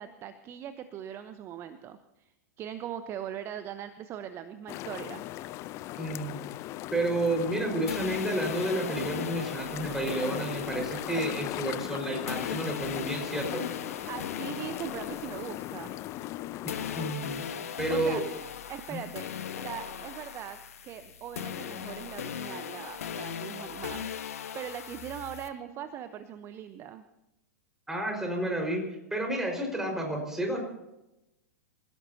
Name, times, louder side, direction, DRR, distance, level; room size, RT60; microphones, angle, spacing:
voice 1, 0.0-5.2 14.1-15.9 17.9-18.2 18.7-19.3 19.5-27.0, right 9 dB, 30° right, 11 dB, 1.0 m, -40 dB
sound 1, 4.7-17.2, left 15 dB, 35° left, 0.6 m, -38 dB
voice 2, 6.0-6.4 6.9-13.7 16.6-18.2 18.9-19.0 27.9-28.8 29.1-30.6, right 1 dB, 5° right, 1 dB, 5.1 m, -31 dB
sound 2, 7.9-16.4 16.7-25.5, left 8 dB, 65° left, 1.4 m, -39 dB
27.5 x 16.5 x 2.9 m, 0.91 s
figure-of-eight pair, 100°, 9 cm